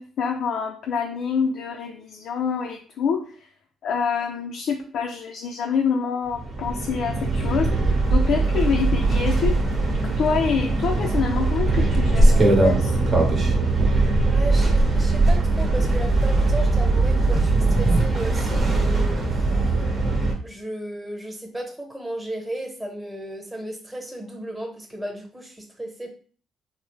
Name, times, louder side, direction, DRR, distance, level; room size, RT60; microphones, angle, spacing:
voice 1, 0.0-3.3 3.8-9.6 10.0-13.0, left 6 dB, 75° left, 2 dB, 0.4 m, -26 dB
sound 1, 6.3-20.3, right 2 dB, 45° right, 0.8 m, -20 dB
voice 2, 14.2-19.8 20.4-26.1, right 1 dB, 5° right, 0 dB, 0.9 m, -34 dB
3.6 x 2.0 x 3.1 m, 0.42 s
cardioid pair, 90°, 0 cm